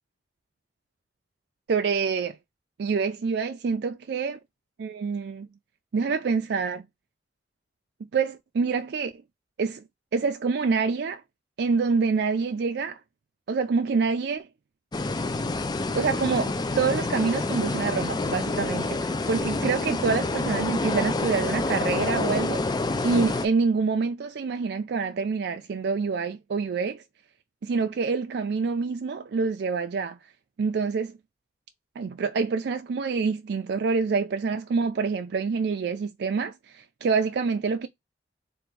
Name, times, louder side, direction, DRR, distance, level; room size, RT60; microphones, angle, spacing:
voice 1, 1.7-2.4 2.8-4.4 4.8-5.5 5.9-6.9 8.1-9.2 9.6-9.8 10.1-11.2 11.6-13.0 13.5-14.5 16.0-22.6 23.0-27.0 27.6-30.2 30.6-31.1 32.0-37.9, right 5 dB, 65° right, 0.4 m, -26 dB
sound 1, 14.9-23.5, left 3 dB, 25° left, 0.4 m, -28 dB
3.5 x 2.5 x 4.5 m
head